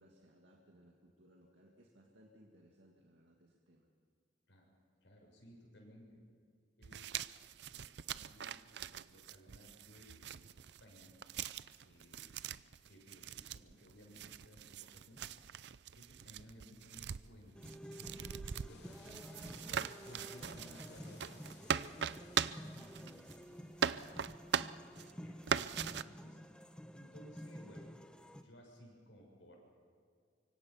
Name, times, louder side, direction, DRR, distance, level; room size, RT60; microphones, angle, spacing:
voice 1, 0.0-3.9, equal, 80° right, 0 dB, 2.1 m, -64 dB
voice 2, 5.0-6.2 6.8-7.1 7.7-7.9 8.1-10.5 10.8-11.2 11.8-12.3 12.9-15.2 16.0-18.3 18.6-19.4 20.0-23.3 23.6-23.7 24.0-24.2 24.6-26.4 26.9-27.8 28.3-29.7, equal, 80° left, 0 dB, 7.1 m, -59 dB
sound 1, 6.8-23.5 23.8-25.1 25.4-26.0, right 7 dB, 65° right, 0.5 m, -41 dB
sound 2, 17.5-28.4, equal, 5° left, 0.9 m, -51 dB
sound 3, 18.7-23.9, left 4 dB, 60° left, 3.5 m, -63 dB
25.0 x 24.5 x 5.7 m, 2.1 s
head